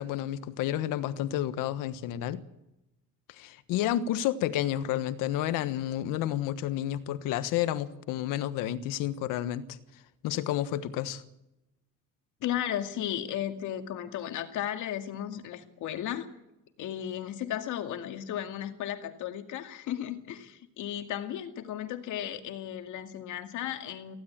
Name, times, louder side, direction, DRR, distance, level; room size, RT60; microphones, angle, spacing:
voice 1, 0.0-2.4 3.3-9.8 10.2-11.2, left 12 dB, 90° left, 1.4 m, -30 dB
voice 2, 12.4-16.3 16.8-24.2, left 11 dB, 70° left, 2.3 m, -35 dB
19.0 x 16.0 x 8.8 m
cardioid pair, 130°, 31 cm